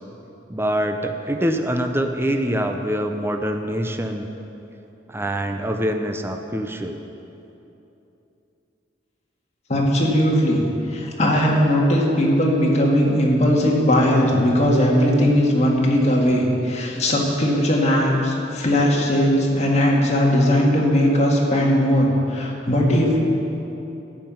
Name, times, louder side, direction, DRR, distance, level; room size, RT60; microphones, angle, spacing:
voice 1, 0.5-4.3 5.1-7.0, equal, 15° right, 5 dB, 0.6 m, -24 dB
voice 2, 9.7-10.7 10.9-23.2, equal, 40° left, -2 dB, 2.0 m, -18 dB
13.5 x 5.8 x 9.3 m, 2.9 s
head